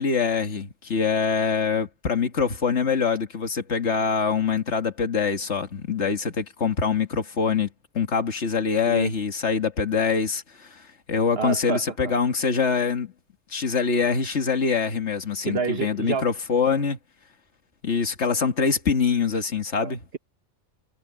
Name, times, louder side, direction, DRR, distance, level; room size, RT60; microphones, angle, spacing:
voice 1, 0.0-7.7 7.9-13.1 13.5-17.0 17.8-20.0, left 5 dB, 65° left, 2.2 m, -24 dB
voice 2, 11.4-12.1 15.4-16.3 19.8-20.2, right 5 dB, 55° right, 1.6 m, -29 dB
omnidirectional pair, 1.3 m